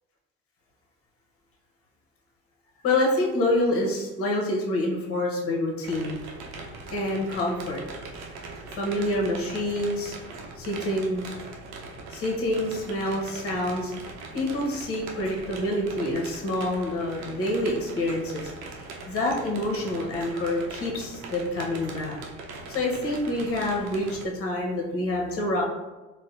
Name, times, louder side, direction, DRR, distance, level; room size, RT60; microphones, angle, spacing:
voice 1, 2.8-6.2 6.9-7.8 8.7-10.1 10.6-11.2 12.1-13.9 14.3-22.2 22.7-25.6, left 1 dB, 50° left, -1 dB, 1.0 m, -27 dB
sound 1, 5.8-24.3, right 3 dB, 70° right, 0.7 m, -40 dB
4.1 x 2.2 x 2.6 m, 1.1 s
hypercardioid pair, 60°, 29 cm